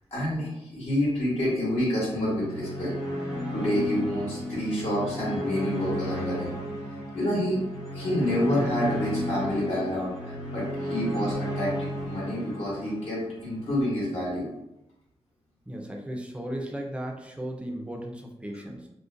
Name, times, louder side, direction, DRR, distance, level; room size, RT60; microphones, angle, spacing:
voice 1, 0.1-2.9 3.2-6.5 7.1-7.6 7.9-11.7 12.0-14.4, left 1 dB, 60° left, -7 dB, 1.0 m, -28 dB
sound 1, 2.2-13.6, equal, 30° left, 0.9 m, -34 dB
voice 2, 15.7-18.9, right 1 dB, 10° right, 1 dB, 0.4 m, -36 dB
2.5 x 2.1 x 2.5 m, 0.87 s
wide cardioid pair, 115°, 11 cm